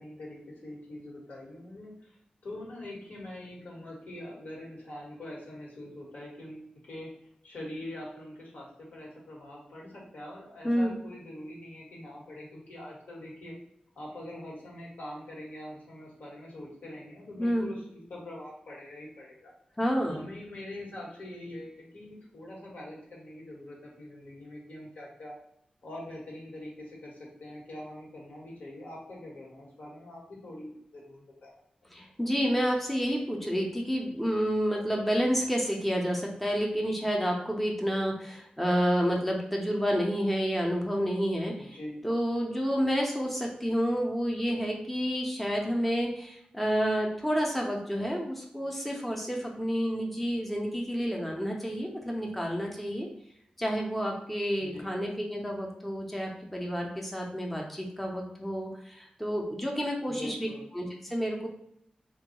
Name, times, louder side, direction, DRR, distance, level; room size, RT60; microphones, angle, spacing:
voice 1, 0.0-7.1 7.4-13.5 13.9-19.5 20.0-25.4 25.8-31.6 31.9-32.1 41.6-42.1 54.6-54.9 60.1-60.7, left 1 dB, 80° left, -3 dB, 1.2 m, -44 dB
voice 2, 19.8-20.3 31.9-41.8 42.0-53.1 53.6-60.5 60.7-61.5, equal, 5° left, -1 dB, 0.5 m, -29 dB
3.4 x 2.2 x 2.8 m, 0.73 s
wide cardioid pair, 145°, 3 cm